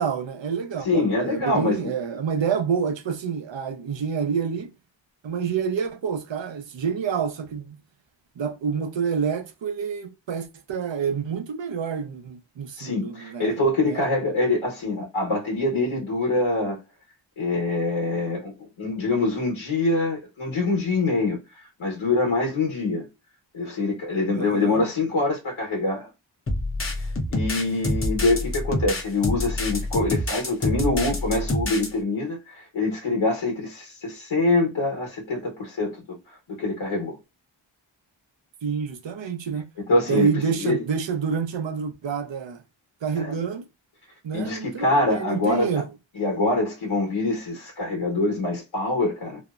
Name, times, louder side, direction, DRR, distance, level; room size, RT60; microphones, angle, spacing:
voice 1, 0.0-4.7 5.2-7.8 8.4-13.6 13.9-14.0 24.3-24.9 38.6-39.7 40.1-42.6 43.0-43.6 44.2-45.9, right 6 dB, 70° right, 0.6 m, -28 dB
voice 2, 0.8-1.9 12.8-16.8 17.4-18.5 18.8-23.1 23.5-26.1 27.0-36.0 36.5-37.2 39.9-40.8 43.2-43.4 44.3-45.8 46.1-49.4, left 2 dB, 85° left, 1.1 m, -25 dB
sound 1, 26.5-31.9, left 1 dB, 30° left, 0.8 m, -27 dB
2.8 x 2.0 x 2.3 m
wide cardioid pair, 90°, 47 cm